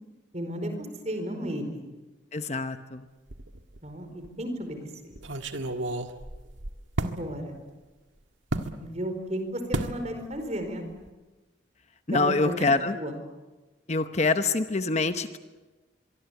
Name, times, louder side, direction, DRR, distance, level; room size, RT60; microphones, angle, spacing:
voice 1, 0.3-0.7 1.0-1.8 3.8-5.1 7.0-7.6 8.6-10.9 12.1-12.7 12.9-13.2, equal, 35° right, 6 dB, 4.7 m, -34 dB
voice 2, 2.3-3.1 12.1-13.0 13.9-15.4, left 3 dB, 35° left, 9 dB, 1.0 m, -25 dB
sound 1, 3.3-3.9 4.2-4.3 5.2-7.2 8.5-8.7 9.7-10.0 10.3-10.7 10.9-11.1, right 1 dB, 90° right, 1.8 m, -32 dB
24.5 x 24.0 x 8.3 m, 1.2 s
head